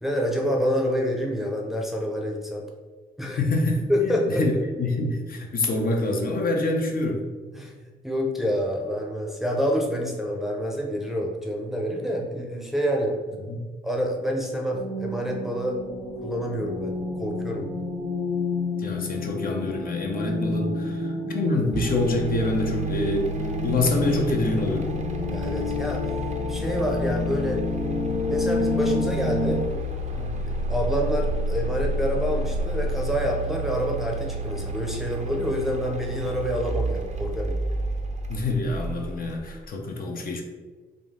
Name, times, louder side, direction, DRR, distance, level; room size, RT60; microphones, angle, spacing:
voice 1, 0.0-2.7 3.2-3.4 3.9-4.6 7.5-7.7 8.0-13.2 13.8-15.8 16.2-16.9 17.2-17.7 25.3-26.1 26.5-27.6 28.0-29.7 30.1-37.6, equal, ahead, -1 dB, 0.6 m, -27 dB
voice 2, 3.3-7.2 13.3-13.6 18.8-23.3 23.6-24.9 38.3-40.4, left 2 dB, 50° left, 1 dB, 0.7 m, -26 dB
sound 1, 14.7-29.6, left 1 dB, 80° left, 1.1 m, -29 dB
sound 2, 21.7-39.5, equal, 40° right, 0.5 m, -30 dB
3.7 x 2.5 x 3.6 m, 1.4 s
cardioid pair, 90°, 18 cm